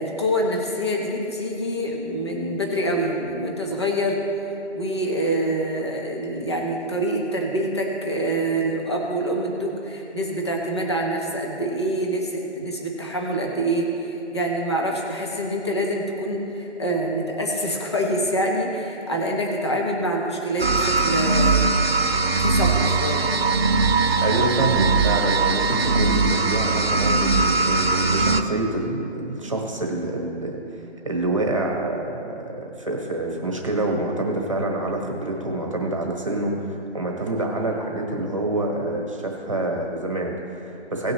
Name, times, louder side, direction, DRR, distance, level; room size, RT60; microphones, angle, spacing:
voice 1, 0.0-4.2 4.7-21.7 22.4-23.3, right 1 dB, 25° left, -1 dB, 1.0 m, -26 dB
sound 1, 20.6-28.4, right 3 dB, 55° right, 1.0 m, -20 dB
voice 2, 24.2-41.1, right 2 dB, 25° right, 1 dB, 1.3 m, -27 dB
18.5 x 6.2 x 3.1 m, 3.0 s
figure-of-eight pair, 175°, 35 cm